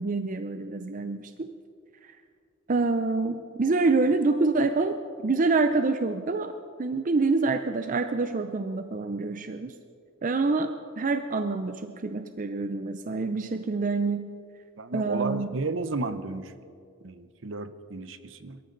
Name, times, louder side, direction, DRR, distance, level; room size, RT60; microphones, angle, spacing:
voice 1, 0.0-1.5 2.0-2.1 2.7-6.5 6.8-9.7 10.2-14.3 14.9-15.5, right 3 dB, 40° right, 8 dB, 0.5 m, -26 dB
voice 2, 14.8-16.5 17.0-18.6, right 3 dB, 65° right, 12 dB, 0.8 m, -33 dB
23.0 x 13.5 x 3.9 m, 2.3 s
head